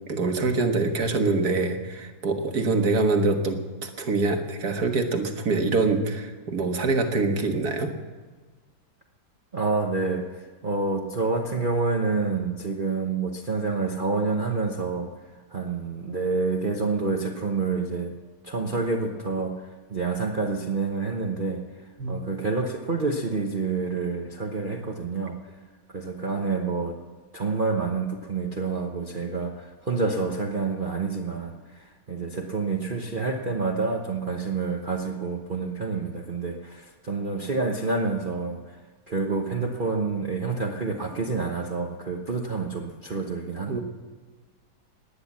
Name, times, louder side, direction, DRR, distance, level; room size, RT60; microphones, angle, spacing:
voice 1, 0.1-7.9 22.0-22.2 43.7-43.8, right 3 dB, 60° right, 5 dB, 2.0 m, -25 dB
voice 2, 9.5-18.2 18.4-25.6 25.9-27.0 27.3-38.8 39.1-43.8, right 4 dB, 35° right, 2 dB, 1.0 m, -28 dB
18.5 x 10.5 x 7.4 m, 1.3 s
omnidirectional pair, 2.0 m